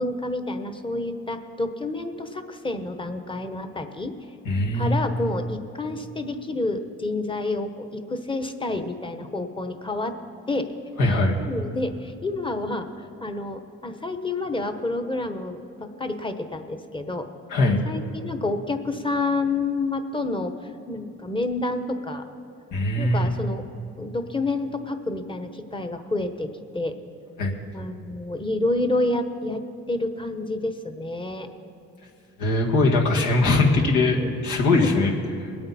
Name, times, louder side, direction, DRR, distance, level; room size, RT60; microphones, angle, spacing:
voice 1, 0.0-4.1 4.7-10.1 10.5-10.7 11.1-12.9 13.2-17.3 17.8-20.5 20.9-22.2 23.0-23.6 24.0-26.9 27.7-29.6 29.9-31.5 34.2-34.3 34.8-35.0, left 2 dB, 15° left, 8 dB, 1.0 m, -29 dB
voice 2, 4.5-5.0 11.0-11.4 17.5-17.8 22.7-23.3 27.4-27.5 32.4-35.1, left 2 dB, 80° left, -1 dB, 2.0 m, -21 dB
20.5 x 8.8 x 4.3 m, 2.5 s
cardioid pair, 90°, 30 cm